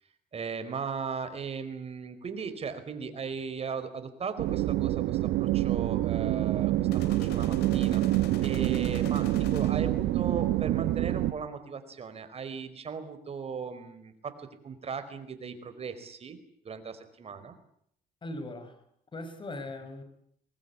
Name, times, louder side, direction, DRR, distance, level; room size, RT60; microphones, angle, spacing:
voice 1, 0.3-8.0 8.4-16.4 16.6-17.6, right 6 dB, 35° right, 9 dB, 4.7 m, -37 dB
sound 1, 4.4-11.3, right 15 dB, 85° right, 1.5 m, -27 dB
sound 2, 6.9-10.1, left 9 dB, 80° left, 3.5 m, -46 dB
voice 2, 18.2-18.8 19.1-20.0, left 2 dB, 30° left, 10 dB, 5.6 m, -39 dB
24.0 x 20.0 x 9.8 m, 0.68 s
cardioid pair, 110°, 17 cm